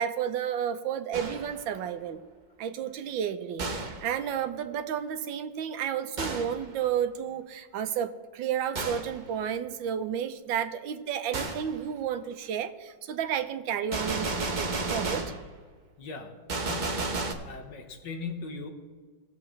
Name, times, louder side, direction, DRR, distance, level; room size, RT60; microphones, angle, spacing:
voice 1, 0.0-2.2 2.6-15.3, right 9 dB, 90° right, 9 dB, 1.5 m, -32 dB
Gunshot gunfire, 1.1-1.6 3.6-4.1 6.2-6.6 8.7-9.2 11.3-11.7 13.9-15.5 16.5-17.3, right 3 dB, 40° right, 0.7 m, -32 dB
voice 2, 16.0-16.3 16.6-17.2 17.4-18.7, left 4 dB, 70° left, 5 dB, 1.8 m, -39 dB
18.5 x 7.5 x 3.2 m, 1.5 s
omnidirectional pair, 2.0 m